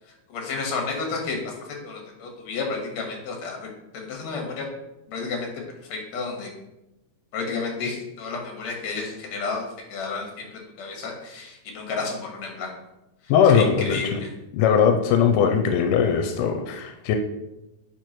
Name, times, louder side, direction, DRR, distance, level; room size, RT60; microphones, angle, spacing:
voice 1, 0.3-1.5 1.8-4.7 5.1-5.5 5.9-6.5 7.3-9.6 9.9-12.7 13.5-14.3, left 4 dB, 60° left, 1 dB, 2.5 m, -31 dB
voice 2, 13.3-14.2 14.5-17.2, left 7 dB, 90° left, 5 dB, 2.2 m, -20 dB
9.3 x 5.0 x 3.1 m, 0.92 s
omnidirectional pair, 3.7 m